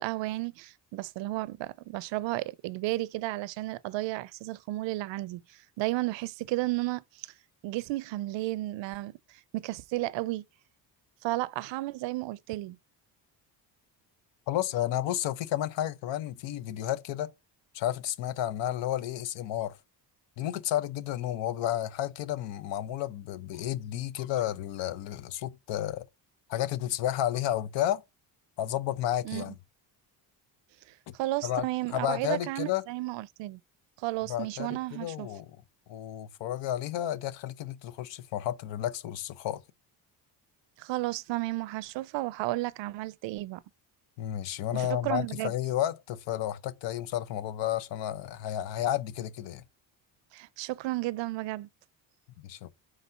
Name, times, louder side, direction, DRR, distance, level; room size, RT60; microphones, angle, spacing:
voice 1, 0.0-7.3 7.6-10.4 11.2-12.8 29.2-29.5 30.9-33.6 34.0-35.3 40.8-43.6 44.7-45.5 50.3-51.7, right 18 dB, 80° right, 0.6 m, -33 dB
voice 2, 14.5-17.3 17.7-19.8 20.4-26.1 26.5-28.0 28.6-29.6 31.1-31.2 31.4-31.7 31.9-32.8 34.3-35.6 35.9-39.6 44.2-49.6 52.4-52.7, left 12 dB, 80° left, 0.9 m, -32 dB
4.9 x 4.1 x 5.5 m
cardioid pair, 135°, 44 cm